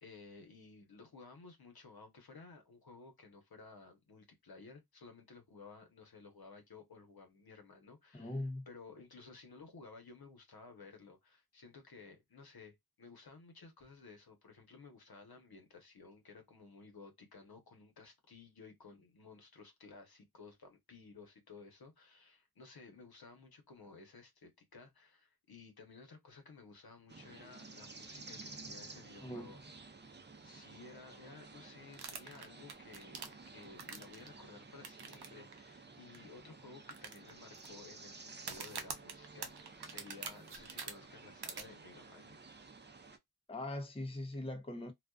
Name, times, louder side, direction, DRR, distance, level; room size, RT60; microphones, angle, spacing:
voice 1, 0.0-29.6 30.1-30.2 30.4-42.4, left 4 dB, 70° left, 0.9 m, -56 dB
voice 2, 8.1-8.7 29.2-29.5 43.5-44.9, left 1 dB, 15° left, 0.6 m, -41 dB
sound 1, 27.1-43.2, right 3 dB, 30° right, 0.5 m, -53 dB
sound 2, 31.9-34.3 34.8-35.3 35.5-35.6 36.1-36.2 36.9-37.7 38.4-40.9 41.4-41.6, right 6 dB, 80° right, 0.6 m, -44 dB
2.4 x 2.3 x 2.2 m
wide cardioid pair, 50°, 38 cm